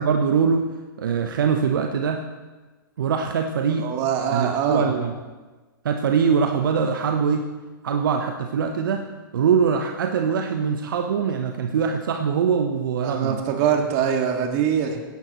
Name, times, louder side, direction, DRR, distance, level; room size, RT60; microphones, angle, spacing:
voice 1, 0.0-2.2 3.0-3.9 4.3-5.2 5.8-7.5 7.8-9.1 9.3-13.4, right 6 dB, 65° right, 5 dB, 0.8 m, -23 dB
voice 2, 3.8-4.9 13.0-15.0, right 8 dB, 40° right, 3 dB, 2.0 m, -23 dB
16.5 x 10.5 x 3.0 m, 1.3 s
hypercardioid pair, 120°, 12 cm